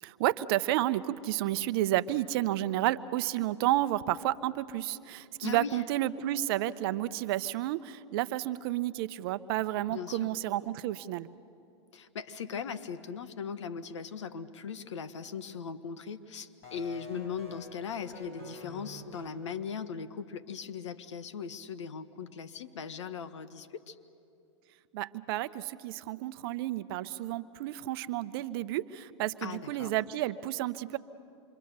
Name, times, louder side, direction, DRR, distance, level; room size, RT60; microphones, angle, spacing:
voice 1, 0.0-11.3 24.9-31.0, right 14 dB, 50° right, 15 dB, 0.7 m, -31 dB
voice 2, 5.4-5.8 9.9-10.3 11.9-24.0 29.4-29.9, left 6 dB, 80° left, 12 dB, 1.2 m, -39 dB
sound 1, 16.6-19.3, left 2 dB, 55° left, 7.9 m, -47 dB
27.0 x 23.5 x 6.7 m, 2.6 s
hypercardioid pair, 120°, 15 cm